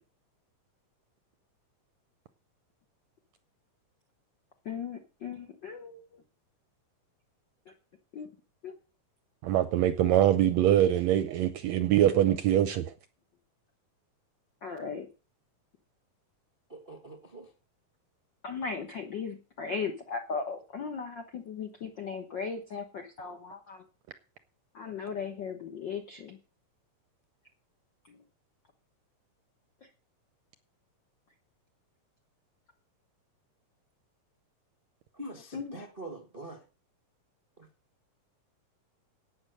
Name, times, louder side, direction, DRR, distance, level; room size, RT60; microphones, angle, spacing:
voice 1, 4.6-6.2 7.7-7.8 8.1-8.3 8.6-8.7 14.6-15.1 18.4-23.8 24.7-26.4 28.1-28.2 29.8-29.9 35.5-35.8, left 5 dB, 65° left, 1.1 m, -37 dB
voice 2, 9.4-12.9, right 12 dB, 75° right, 1.6 m, -23 dB
voice 3, 16.7-17.5 35.1-36.6 37.6-37.7, right 1 dB, 45° right, 0.6 m, -44 dB
11.5 x 8.9 x 6.4 m
omnidirectional pair, 3.8 m